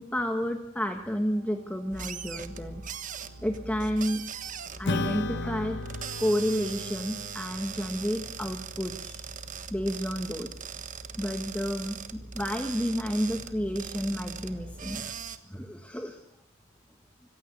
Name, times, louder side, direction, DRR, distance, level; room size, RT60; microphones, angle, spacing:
voice 1, 0.0-2.8 3.4-4.2 4.8-5.8 6.2-9.2 9.7-10.5 11.2-15.1 15.5-16.2, equal, 5° left, 5 dB, 1.4 m, -31 dB
sound 1, 1.3-6.3, right 3 dB, 55° right, 7.6 m, -57 dB
sound 2, 1.9-15.4, right 6 dB, 35° right, 1.4 m, -40 dB
Acoustic guitar / Strum, 4.8-9.6, left 2 dB, 55° left, 1.1 m, -36 dB
25.0 x 16.0 x 8.5 m, 0.79 s
head